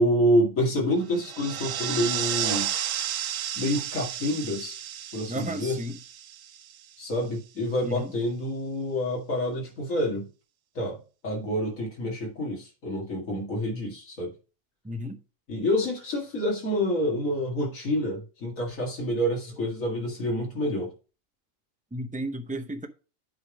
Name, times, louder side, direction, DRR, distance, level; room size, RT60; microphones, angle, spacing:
voice 1, 0.0-2.7 3.5-4.8 5.1-5.8 7.0-10.3 10.8-14.3 15.5-20.9, equal, 90° left, 2.5 m, -27 dB
sound 1, 1.1-6.9, right 10 dB, 90° right, 1.0 m, -32 dB
voice 2, 5.3-6.0 7.8-8.1 14.8-15.2 21.9-22.9, equal, 15° right, 0.3 m, -33 dB
8.6 x 3.5 x 5.0 m
omnidirectional pair, 1.3 m